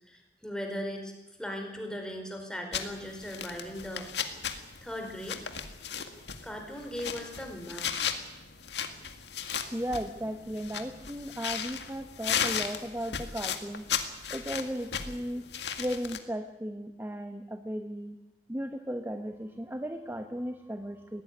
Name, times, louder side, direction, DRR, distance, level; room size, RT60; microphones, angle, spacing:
voice 1, 0.1-1.1 1.4-4.1 4.8-5.4 6.4-7.9, equal, 5° left, 3 dB, 4.7 m, -38 dB
sound 1, 2.7-16.2, left 7 dB, 75° left, 1.9 m, -36 dB
voice 2, 9.7-13.9 14.3-15.4 15.8-18.2 18.5-21.2, equal, 15° right, 7 dB, 1.1 m, -36 dB
20.5 x 17.0 x 9.8 m, 1.0 s
head